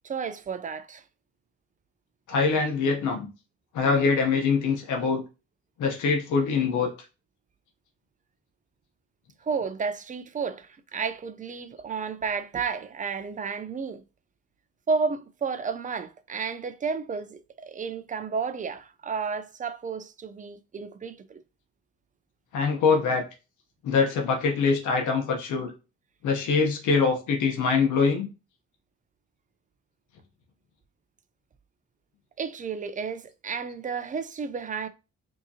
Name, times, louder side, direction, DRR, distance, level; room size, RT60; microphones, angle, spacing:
voice 1, 0.0-1.0 9.4-14.0 14.9-21.4 32.4-34.9, right 5 dB, 25° right, 0.4 m, -32 dB
voice 2, 2.3-3.3 3.7-5.2 5.8-6.9 22.5-23.2 23.8-25.7 26.2-28.3, left 5 dB, 80° left, 0.9 m, -24 dB
4.8 x 2.9 x 2.7 m
cardioid pair, 90°, 30 cm